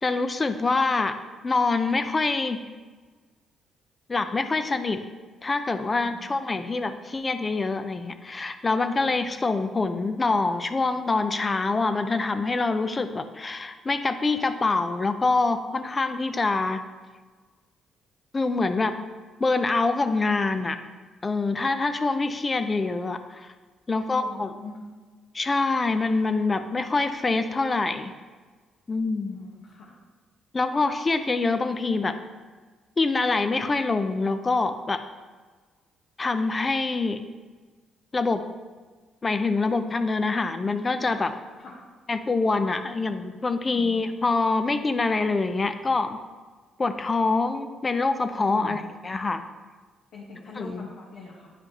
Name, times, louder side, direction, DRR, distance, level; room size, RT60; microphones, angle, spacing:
voice 1, 0.0-1.1 1.4-2.6 4.1-5.0 5.4-16.8 18.3-18.9 19.4-20.8 21.2-23.5 23.9-24.5 25.3-28.1 28.9-29.4 30.5-32.1 33.0-35.0 36.2-37.2 38.1-38.4 39.2-41.3 42.1-46.2 46.8-49.4 50.6-50.9, left 3 dB, 30° left, 9 dB, 0.5 m, -25 dB
voice 2, 23.9-24.7 29.3-29.9 41.6-41.7 43.7-43.9 48.5-48.8 50.1-51.5, left 3 dB, 75° left, -5 dB, 1.3 m, -42 dB
10.5 x 5.0 x 2.9 m, 1.4 s
cardioid pair, 90°, 0 cm